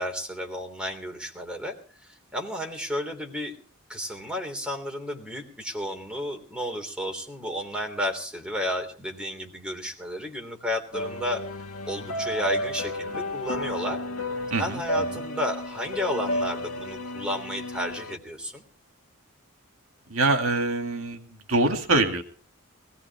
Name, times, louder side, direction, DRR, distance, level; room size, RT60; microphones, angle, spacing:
voice 1, 0.0-1.8 2.0-3.5 3.9-11.4 11.8-14.0 14.6-18.6, equal, 5° right, 2 dB, 3.3 m, -32 dB
sound 1, 10.9-18.2, left 1 dB, 80° left, 1.5 m, -32 dB
voice 2, 14.5-15.0 20.1-21.2 21.5-22.2, right 2 dB, 65° right, 5 dB, 2.4 m, -24 dB
21.0 x 17.5 x 3.6 m, 0.39 s
head